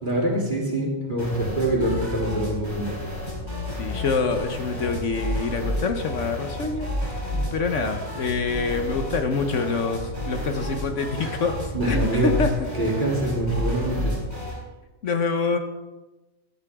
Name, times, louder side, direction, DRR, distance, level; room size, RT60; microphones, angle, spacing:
voice 1, 0.0-3.0 7.3-7.4 11.2-11.4 11.7-12.5 12.7-14.2, right 1 dB, 40° right, -3 dB, 3.3 m, -25 dB
sound 1, 1.2-14.6, left 1 dB, 35° left, 4.5 m, -31 dB
voice 2, 3.8-6.9 7.5-11.6 11.8-12.5 15.0-15.6, left 4 dB, 70° left, 6 dB, 1.4 m, -26 dB
16.5 x 11.0 x 3.6 m, 1.1 s
omnidirectional pair, 1.3 m